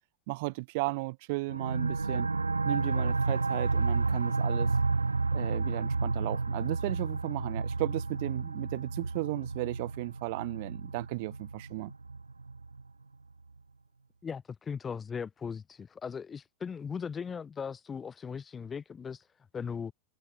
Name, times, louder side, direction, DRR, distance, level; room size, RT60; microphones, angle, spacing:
voice 1, 0.3-2.3 2.6-4.7 5.3-11.9, right 25 dB, 50° right, 1.4 m, -35 dB
sound 1, 1.5-12.8, right 3 dB, 80° right, 0.3 m, -31 dB
voice 2, 14.2-19.2 19.5-19.9, left 6 dB, 20° left, 1.1 m, -38 dB
figure-of-eight pair, 90°, 0 cm